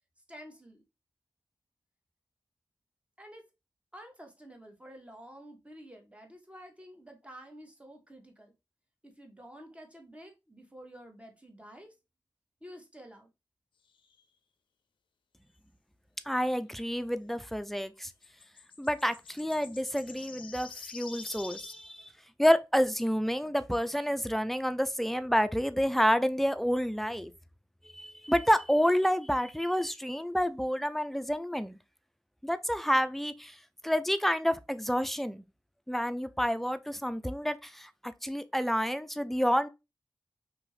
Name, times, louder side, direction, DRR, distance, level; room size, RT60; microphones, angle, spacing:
voice 1, 0.3-0.8 3.2-3.4 3.9-8.5 9.0-11.9 12.6-13.3, equal, 15° right, 0.9 m, -50 dB
sound 1, 14.0-14.2 18.0-21.8, left 6 dB, 90° left, 0.4 m, -48 dB
voice 2, 16.3-18.1 18.8-22.1 22.4-27.3 27.9-31.8 32.4-33.6 33.8-35.4 35.9-39.7, equal, 5° left, 0.3 m, -29 dB
2.7 x 2.5 x 3.1 m
cardioid pair, 45°, 8 cm